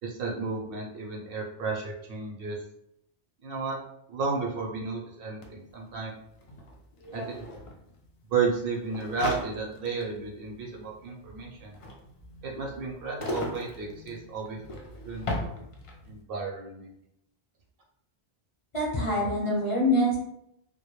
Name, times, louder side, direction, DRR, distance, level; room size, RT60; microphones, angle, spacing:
voice 1, 0.0-2.6 3.4-3.8 4.1-6.1 7.1-7.4 8.3-11.7 12.4-14.6 15.0-15.6 16.1-16.9, right 4 dB, 65° right, -1 dB, 0.7 m, -33 dB
sound 1, 5.4-5.5 5.7-16.2, left 1 dB, 55° left, 0.3 m, -39 dB
voice 2, 18.7-20.2, left 1 dB, 35° left, -5 dB, 0.7 m, -25 dB
2.2 x 2.1 x 2.9 m, 0.77 s
omnidirectional pair, 1.1 m